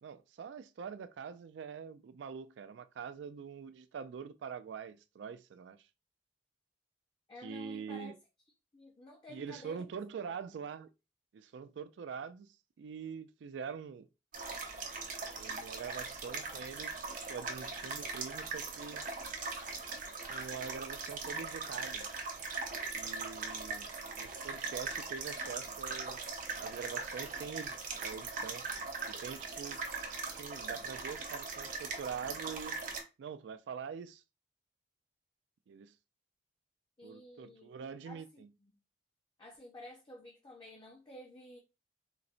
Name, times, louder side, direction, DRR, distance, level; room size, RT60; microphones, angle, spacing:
voice 1, 0.0-5.8 7.4-8.2 9.3-10.9 11.3-14.1 15.4-17.0 17.3-19.0 20.3-22.1 22.9-23.9 24.2-26.2 26.6-28.7 29.1-29.8 30.4-32.8 33.2-34.2 35.7-35.9 37.0-38.5, right 6 dB, 75° right, 0.3 m, -44 dB
voice 2, 7.3-8.1 8.7-9.9 10.5-10.6 23.7-23.8 37.0-37.7 38.0-38.7 39.4-41.6, left 1 dB, 25° left, 0.5 m, -52 dB
sound 1, 14.3-33.0, right 4 dB, 50° right, 0.8 m, -40 dB
3.9 x 2.0 x 2.4 m
head